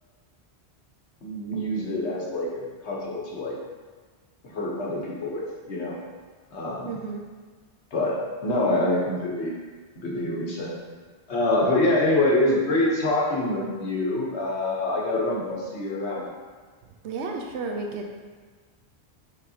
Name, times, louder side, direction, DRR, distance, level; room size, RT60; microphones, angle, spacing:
voice 1, 1.2-3.6 4.4-6.0 6.5-7.0 7.9-9.5 9.9-10.8 11.3-16.3, left 1 dB, 85° left, -4 dB, 1.2 m, -26 dB
voice 2, 6.9-7.2 17.0-18.2, right 3 dB, 85° right, 2 dB, 0.9 m, -32 dB
5.1 x 3.6 x 2.7 m, 1.5 s
omnidirectional pair, 1.1 m